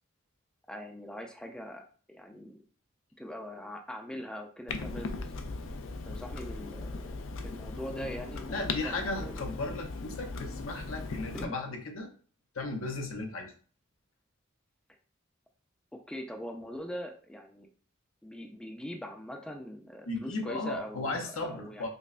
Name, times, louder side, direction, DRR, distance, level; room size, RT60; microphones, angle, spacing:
voice 1, 0.7-2.6 3.2-5.3 6.0-7.1 7.4-9.5 11.3-11.5 15.9-17.7 18.2-21.9, equal, 5° left, 2 dB, 0.4 m, -42 dB
Clock, 4.7-11.4, left 3 dB, 70° left, 0.4 m, -38 dB
voice 2, 8.5-12.1 12.5-13.5 20.1-21.9, left 2 dB, 85° left, 3 dB, 0.8 m, -35 dB
5.3 x 2.1 x 2.5 m, 0.42 s
head